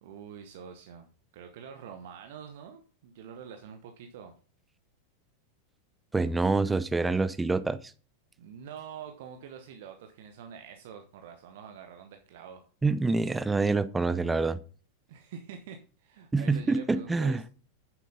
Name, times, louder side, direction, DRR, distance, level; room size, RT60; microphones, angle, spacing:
voice 1, 0.0-1.1 1.3-4.3 8.4-12.7 15.1-17.5, right 7 dB, 55° right, 1.1 m, -46 dB
voice 2, 6.1-7.8 12.8-14.6 16.3-17.4, right 3 dB, 10° right, 0.6 m, -26 dB
9.1 x 7.4 x 4.0 m
figure-of-eight pair, 90°, 0 cm